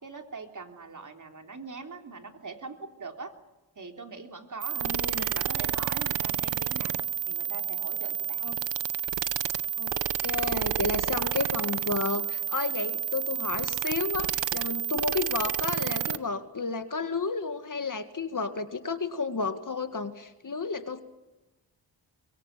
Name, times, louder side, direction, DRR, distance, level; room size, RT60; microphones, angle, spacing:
voice 1, 0.0-3.3 3.8-7.0 7.3-8.4, right 4 dB, 45° right, 4 dB, 3.5 m, -42 dB
sound 1, 4.6-16.2, right 9 dB, 80° right, 1.0 m, -30 dB
voice 2, 4.8-5.3 8.4-8.6 9.8-9.9 10.2-21.0, left 4 dB, 45° left, 9 dB, 2.0 m, -32 dB
24.0 x 22.5 x 7.6 m, 1.1 s
wide cardioid pair, 75°, 43 cm